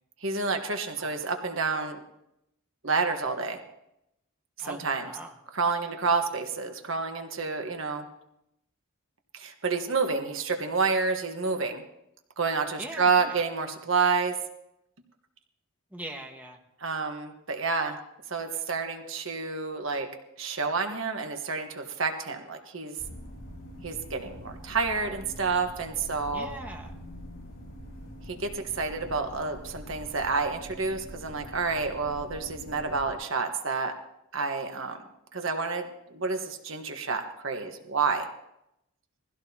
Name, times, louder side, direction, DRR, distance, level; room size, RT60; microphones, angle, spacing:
voice 1, 0.2-2.0 2.8-3.6 4.6-5.1 5.5-8.0 9.3-11.8 12.4-14.4 16.8-18.0 18.3-20.1 20.4-22.9 23.8-26.5 28.3-33.9 34.3-35.0 35.3-38.3, right 4 dB, 60° right, 5 dB, 1.4 m, -29 dB
voice 2, 4.6-5.3 12.8-13.3 15.9-16.6 26.3-27.0, right 1 dB, 5° right, 1 dB, 1.5 m, -41 dB
sound 1, 23.0-33.1, equal, 65° left, 3.8 m, -44 dB
22.0 x 16.0 x 2.9 m, 0.83 s
head